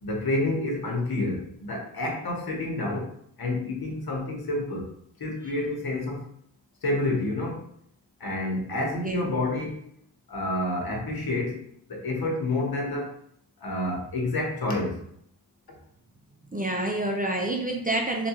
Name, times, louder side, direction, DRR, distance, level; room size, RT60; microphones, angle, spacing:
voice 1, 0.0-3.1 3.4-4.9 5.2-6.2 6.8-7.7 8.2-9.8 10.3-11.6 11.9-13.2 13.6-15.0, left 2 dB, 55° left, 0 dB, 1.1 m, -29 dB
voice 2, 16.5-18.3, right 1 dB, 20° right, 0 dB, 0.5 m, -28 dB
3.6 x 2.5 x 2.9 m, 0.69 s
cardioid pair, 60°, 43 cm